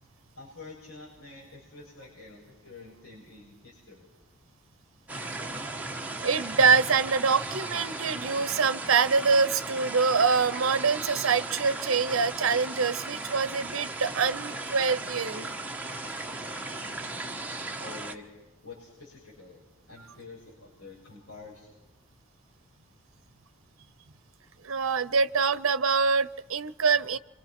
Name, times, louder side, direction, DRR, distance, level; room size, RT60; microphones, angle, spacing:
voice 1, 0.4-4.1 17.8-18.2 18.6-21.7, left 3 dB, 70° left, -5 dB, 7.5 m, -47 dB
sound 1, 5.1-18.1, right 2 dB, 5° right, 1.3 m, -36 dB
voice 2, 6.2-15.5 15.8-15.9 20.0-20.1 24.6-27.2, right 5 dB, 80° right, 14 dB, 0.8 m, -25 dB
27.0 x 26.0 x 6.0 m, 0.97 s
head